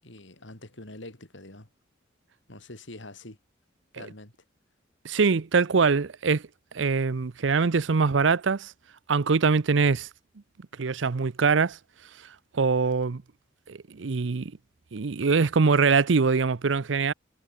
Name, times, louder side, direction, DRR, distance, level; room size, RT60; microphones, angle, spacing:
voice 1, 0.0-1.7 2.5-3.4 3.9-4.3, left 2 dB, 70° left, 4.3 m, -44 dB
voice 2, 5.0-6.5 6.7-8.7 9.1-10.1 10.8-11.8 12.5-13.2 13.7-14.5 14.9-17.1, right 4 dB, 70° right, 0.6 m, -23 dB
head